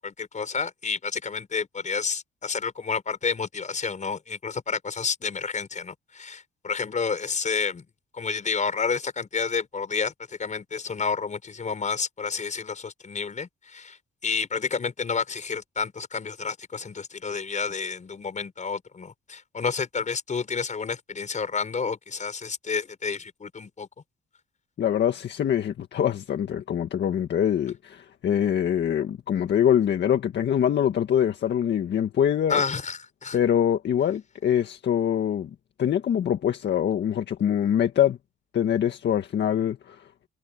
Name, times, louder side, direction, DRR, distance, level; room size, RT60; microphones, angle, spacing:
voice 1, 0.0-7.9 8.1-14.0 14.2-23.9 32.5-33.4, left 5 dB, 40° left, 5.9 m, -30 dB
voice 2, 24.8-32.6 33.3-35.5 35.8-38.2 38.5-40.3, left 9 dB, 60° left, 1.8 m, -24 dB
cardioid pair, 90°, 20 cm